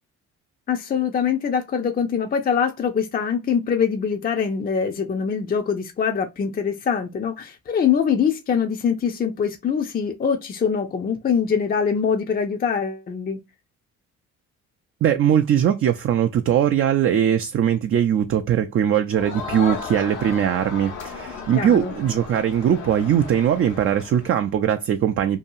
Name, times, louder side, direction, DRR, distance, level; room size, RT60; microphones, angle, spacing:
voice 1, 0.7-13.4 21.5-21.9, left 7 dB, 30° left, 0.5 m, -23 dB
voice 2, 15.0-25.4, right 9 dB, 45° right, 0.4 m, -20 dB
Crowd, 19.1-24.4, left 5 dB, 85° left, 1.1 m, -35 dB
2.7 x 2.3 x 2.6 m
cardioid pair, 90°, 30 cm